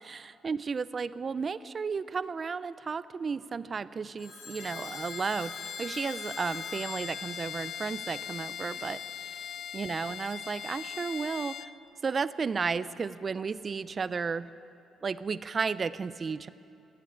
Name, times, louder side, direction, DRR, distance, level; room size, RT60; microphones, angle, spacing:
voice 1, 0.0-9.4 9.7-11.7 12.0-14.5 15.0-16.5, right 5 dB, 40° right, 16 dB, 0.5 m, -33 dB
Telephone, 4.2-8.4, left 4 dB, 90° left, 4.7 m, -47 dB
Bowed string instrument, 4.6-11.8, left 8 dB, 55° left, 0.5 m, -40 dB
16.5 x 8.3 x 9.7 m, 2.7 s
cardioid pair, 90°, 0 cm